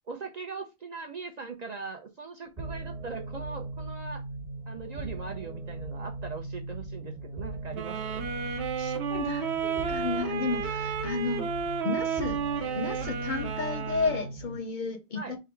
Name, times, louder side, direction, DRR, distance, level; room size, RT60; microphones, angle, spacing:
voice 1, 0.1-4.2 4.7-8.3 15.2-15.4, right 4 dB, 50° right, 0.5 m, -40 dB
sound 1, 2.6-14.6, right 2 dB, 30° right, 1.3 m, -38 dB
sound 2, 7.7-14.3, right 6 dB, 85° right, 1.0 m, -32 dB
voice 2, 8.8-11.5 11.8-12.4 12.8-15.4, left 4 dB, 60° left, 0.6 m, -32 dB
3.6 x 2.0 x 4.3 m
omnidirectional pair, 1.1 m